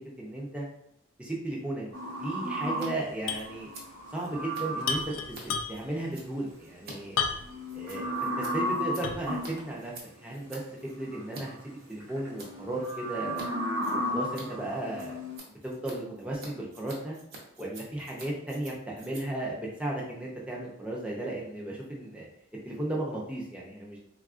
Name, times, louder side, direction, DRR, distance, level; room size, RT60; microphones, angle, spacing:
voice 1, 0.2-0.7 1.2-1.9 2.2-3.7 4.1-5.0 5.7-7.2 7.7-9.9 10.2-10.6 11.0-13.5 13.9-15.2 15.6-17.2 17.6-22.3 22.6-24.0, right 1 dB, 5° right, -4 dB, 0.5 m, -35 dB
sound 1, 1.9-5.2 7.3-9.6 10.9-11.5 12.0-15.4, equal, 80° right, 0.8 m, -34 dB
Scissors, 2.8-2.9 3.1-11.4 11.8-12.5 12.8-13.5 13.7-20.5, right 2 dB, 50° right, 0.7 m, -49 dB
sound 2, 3.3-3.5 3.8-3.9 4.8-6.0 7.2-7.7 8.2-8.3 9.0-9.4, left 6 dB, 75° left, 0.3 m, -32 dB
3.4 x 2.4 x 2.4 m, 0.73 s
head